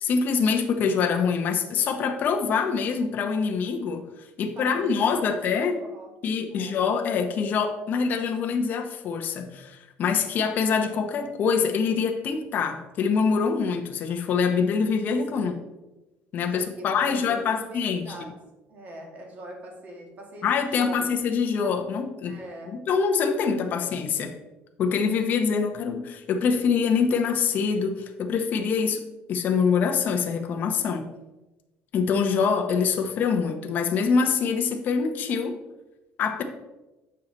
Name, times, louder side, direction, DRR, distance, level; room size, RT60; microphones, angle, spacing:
voice 1, 0.0-5.8 6.2-15.5 16.3-18.0 20.4-22.3 22.9-24.3 24.8-29.0 29.3-31.0 31.9-35.6 36.2-36.4, left 5 dB, 45° left, 3 dB, 0.8 m, -25 dB
voice 2, 4.4-6.1 6.5-6.8 15.3-15.6 16.5-18.3 18.7-21.2 22.2-22.7, right 1 dB, 40° right, 1 dB, 1.8 m, -42 dB
7.4 x 5.7 x 3.8 m, 1.0 s
cardioid pair, 150°, 4 cm